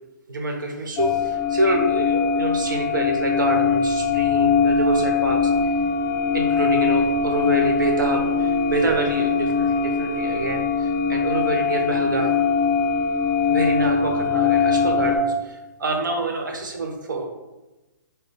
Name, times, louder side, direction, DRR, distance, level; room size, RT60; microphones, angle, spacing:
voice 1, 0.3-5.5 6.3-12.4 13.5-17.3, right 2 dB, 85° right, 2 dB, 1.1 m, -26 dB
sound 1, 1.0-15.2, left 5 dB, 25° left, 0.5 m, -21 dB
6.2 x 2.2 x 3.5 m, 1.0 s
hypercardioid pair, 155°, 10 cm